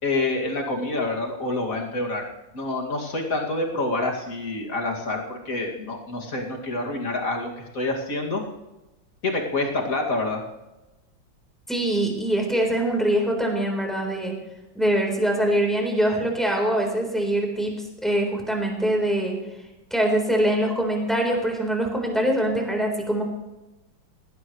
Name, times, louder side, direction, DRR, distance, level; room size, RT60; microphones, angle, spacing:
voice 1, 0.0-2.2 2.5-8.4 9.2-10.4, left 2 dB, 45° left, 0 dB, 2.8 m, -27 dB
voice 2, 11.7-14.3 14.7-19.4 19.9-23.2, right 1 dB, ahead, 0 dB, 3.9 m, -23 dB
19.0 x 16.5 x 3.2 m, 1.0 s
omnidirectional pair, 2.1 m